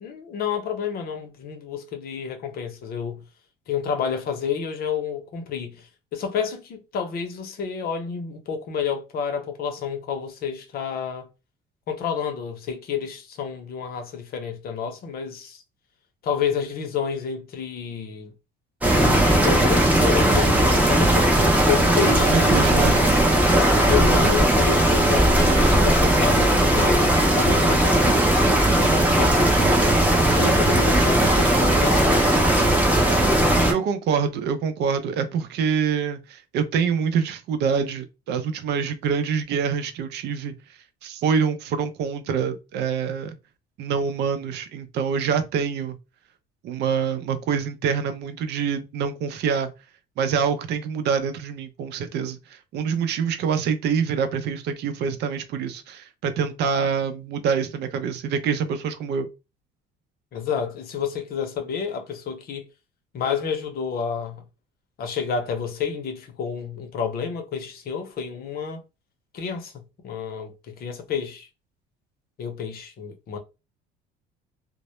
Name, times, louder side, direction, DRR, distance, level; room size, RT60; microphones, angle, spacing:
voice 1, 0.0-3.2 3.7-5.9 6.1-11.3 11.9-15.6 16.2-18.3 19.0-21.3 21.7-23.1 23.5-27.0 27.3-29.9 30.4-32.3 60.3-62.7 63.1-64.4 65.0-68.8 69.3-69.7 70.0-71.5 72.4-73.4, left 7 dB, 55° left, 0.6 m, -30 dB
sound 1, 18.8-33.7, right 1 dB, 10° right, 0.7 m, -18 dB
voice 2, 22.2-23.0 33.7-40.5 41.0-43.4 43.8-46.0 46.6-49.7 50.2-59.3, right 6 dB, 65° right, 0.5 m, -25 dB
2.0 x 2.0 x 2.9 m
cardioid pair, 105°, 19 cm